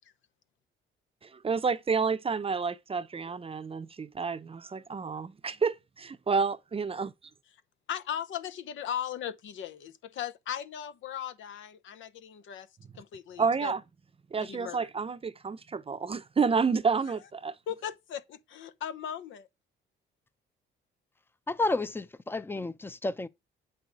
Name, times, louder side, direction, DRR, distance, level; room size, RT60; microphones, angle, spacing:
voice 1, 1.2-7.1 13.4-13.8 14.3-17.5, right 5 dB, 30° right, 0.7 m, -30 dB
voice 2, 7.9-12.7 13.0-13.7 14.4-14.9 17.7-19.5, left 9 dB, 75° left, 0.8 m, -38 dB
voice 3, 21.5-23.3, left 2 dB, 10° left, 0.6 m, -31 dB
7.5 x 5.5 x 4.7 m
cardioid pair, 90°, 20 cm